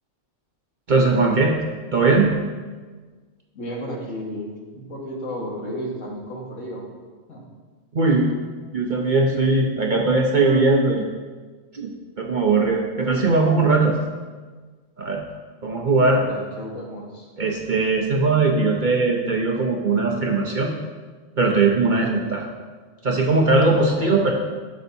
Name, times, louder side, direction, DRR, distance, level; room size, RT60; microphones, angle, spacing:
voice 1, 0.9-1.5 1.9-2.4 7.9-8.3 8.7-11.0 11.7-14.0 15.0-15.2 15.6-16.2 17.4-20.7 21.4-22.5 23.0-24.3, right 3 dB, 45° right, 0 dB, 0.8 m, -19 dB
voice 2, 3.5-6.9 7.3-7.5 16.0-17.3 21.9-22.2 24.0-24.2, equal, 75° left, -2 dB, 1.9 m, -33 dB
12.0 x 6.1 x 2.7 m, 1.4 s
omnidirectional pair, 1.3 m